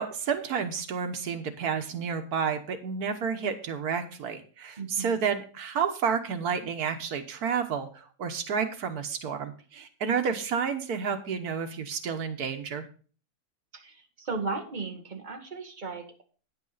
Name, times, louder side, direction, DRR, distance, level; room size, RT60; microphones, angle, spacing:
voice 1, 0.0-12.9, right 6 dB, 90° right, 8 dB, 1.6 m, -30 dB
voice 2, 4.8-5.2 13.7-16.2, right 4 dB, 30° right, 4 dB, 1.7 m, -36 dB
9.7 x 8.8 x 4.0 m, 0.39 s
omnidirectional pair, 1.6 m